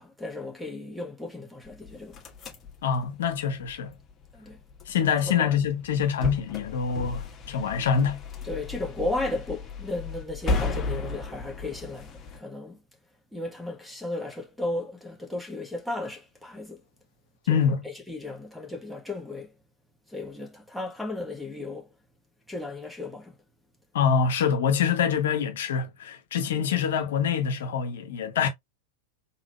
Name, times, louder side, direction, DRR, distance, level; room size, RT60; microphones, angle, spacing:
voice 1, 0.0-2.2 4.3-4.6 5.2-5.6 8.4-12.8 13.3-16.8 17.4-19.5 20.1-21.9 22.5-23.3 26.5-26.7, left 2 dB, ahead, 1.0 m, -35 dB
sound 1, 1.7-12.4, left 3 dB, 25° left, 1.3 m, -35 dB
voice 2, 2.8-3.9 4.9-8.2 17.5-17.8 23.9-28.5, left 7 dB, 60° left, 0.9 m, -25 dB
3.9 x 3.8 x 2.2 m
figure-of-eight pair, 90°, 0 cm